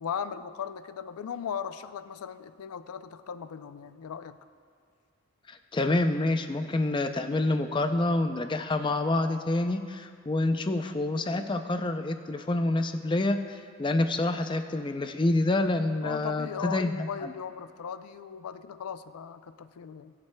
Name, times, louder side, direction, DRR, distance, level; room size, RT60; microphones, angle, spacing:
voice 1, 0.0-4.4 16.0-20.1, left 7 dB, 85° left, 12 dB, 0.4 m, -37 dB
voice 2, 5.5-17.3, left 2 dB, 20° left, 8 dB, 0.4 m, -27 dB
21.0 x 7.4 x 2.2 m, 2.1 s
head